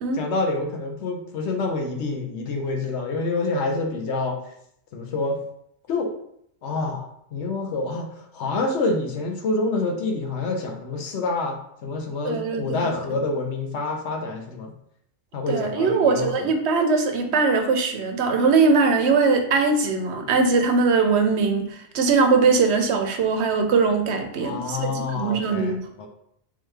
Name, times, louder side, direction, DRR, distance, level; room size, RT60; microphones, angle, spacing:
voice 1, 0.1-4.4 4.9-5.4 5.9-6.1 6.6-8.1 8.3-14.7 15.3-16.5 24.4-26.1, left 3 dB, 70° left, 3 dB, 1.0 m, -27 dB
voice 2, 12.2-12.9 15.5-25.8, right 4 dB, 70° right, 5 dB, 0.8 m, -21 dB
3.6 x 3.1 x 3.2 m, 0.70 s
omnidirectional pair, 1.2 m